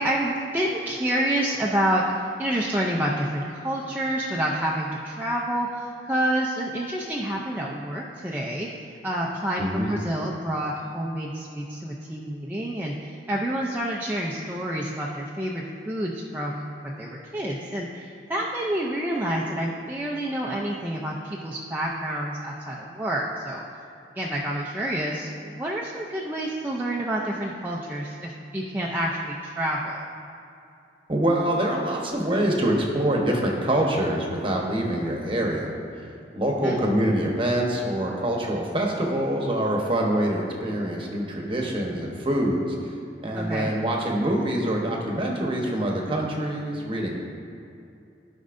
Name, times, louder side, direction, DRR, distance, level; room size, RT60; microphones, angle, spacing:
voice 1, 0.0-2.0 2.4-8.7 9.0-23.6 24.2-30.1 36.6-36.8 43.3-43.7, right 1 dB, 10° right, -4 dB, 0.5 m, -28 dB
voice 2, 9.6-10.0 31.1-35.7 36.3-42.9 43.2-47.2, right 1 dB, 30° right, 0 dB, 1.0 m, -25 dB
15.5 x 5.3 x 2.6 m, 2.6 s
head